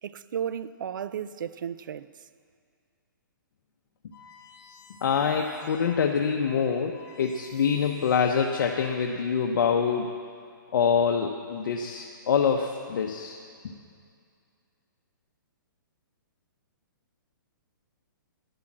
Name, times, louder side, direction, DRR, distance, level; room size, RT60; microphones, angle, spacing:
voice 1, 0.0-2.1, right 9 dB, 70° right, 0.5 m, -34 dB
sound 1, 4.1-6.1 6.5-6.6 6.8-9.2, left 4 dB, 45° left, 4.0 m, -52 dB
voice 2, 5.0-10.1 10.7-13.4 13.6-13.7, left 6 dB, 65° left, 1.0 m, -25 dB
11.5 x 10.0 x 7.4 m
hypercardioid pair, 150°, 11 cm